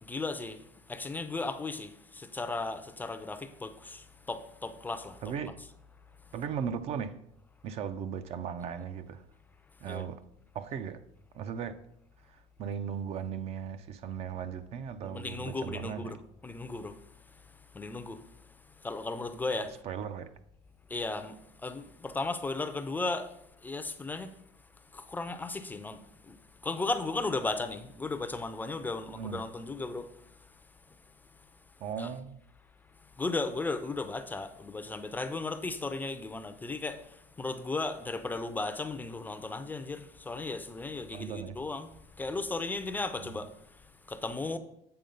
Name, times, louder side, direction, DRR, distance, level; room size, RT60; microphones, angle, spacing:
voice 1, 0.1-0.6 0.9-5.2 9.9-10.0 15.0-16.2 16.4-16.9 17.8-18.2 18.8-19.7 20.9-21.4 21.6-23.3 23.6-24.3 24.9-26.0 26.3-26.4 26.6-30.1 32.0-32.1 33.2-37.0 37.4-41.9 42.2-43.5 44.1-44.6, left 3 dB, 15° left, 0.4 m, -35 dB
voice 2, 5.2-5.6 6.3-7.2 7.6-9.2 9.8-10.2 10.5-11.0 11.3-11.8 12.3-16.2 19.8-20.3 29.1-29.5 31.8-32.4 41.1-41.6 43.2-43.4, right 7 dB, 50° right, 0.5 m, -37 dB
7.8 x 4.1 x 5.4 m
cardioid pair, 130°, 13 cm